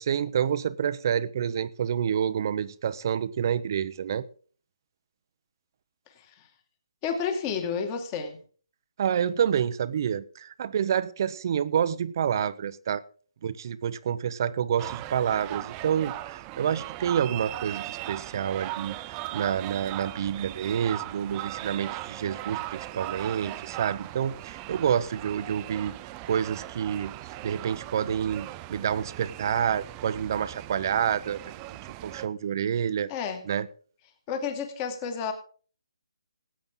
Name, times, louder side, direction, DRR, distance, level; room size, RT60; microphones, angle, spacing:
voice 1, 0.0-4.3 9.0-13.0 13.4-25.9 26.2-27.1 27.4-31.8 32.0-33.1 33.5-33.7, right 8 dB, 40° right, 15 dB, 0.8 m, -28 dB
voice 2, 6.2-6.5 7.0-8.4 33.1-33.4 34.3-35.3, left 6 dB, 25° left, 6 dB, 2.2 m, -31 dB
sound 1, 14.8-32.3, right 16 dB, 20° right, 0.5 m, -39 dB
19.0 x 8.7 x 3.9 m, 0.42 s
hypercardioid pair, 155°, 3 cm